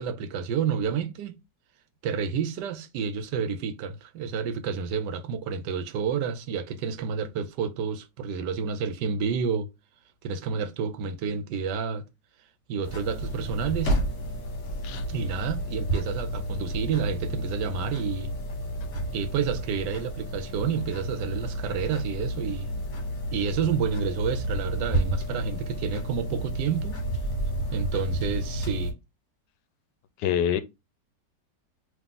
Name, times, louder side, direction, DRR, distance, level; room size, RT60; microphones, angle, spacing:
voice 1, 0.0-1.4 2.0-9.7 10.2-12.0 12.7-14.0 15.1-18.3 19.1-22.7 23.3-27.0 27.7-29.0, right 6 dB, 75° right, 1.2 m, -29 dB
sound 1, 12.8-28.9, right 1 dB, 50° left, 1.8 m, -31 dB
voice 2, 30.2-30.6, left 9 dB, 80° left, 1.2 m, -25 dB
3.6 x 3.0 x 3.8 m
omnidirectional pair, 1.9 m